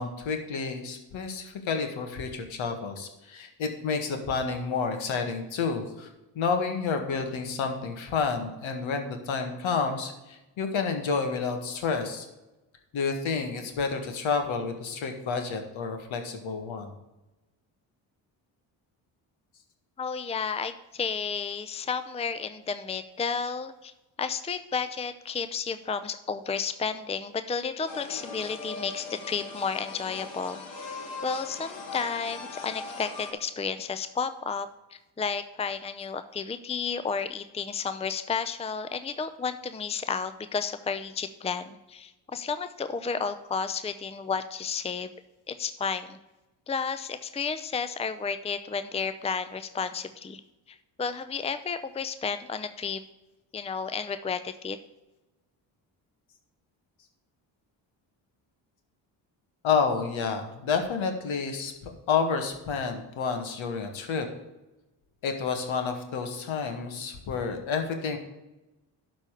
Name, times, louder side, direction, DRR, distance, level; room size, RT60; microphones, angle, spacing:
voice 1, 0.0-6.1 6.4-12.3 12.9-16.9 59.6-64.3 65.2-68.2, left 5 dB, 65° left, 5 dB, 1.8 m, -30 dB
voice 2, 20.0-23.9 24.2-30.6 31.2-34.7 35.2-45.1 45.5-46.2 46.7-50.4 51.0-53.0 53.5-54.8, left 5 dB, 15° left, 11 dB, 0.6 m, -32 dB
sound 1, 27.9-33.3, left 3 dB, 90° left, 2.1 m, -40 dB
11.5 x 4.2 x 6.7 m, 1.0 s
hypercardioid pair, 55°, 49 cm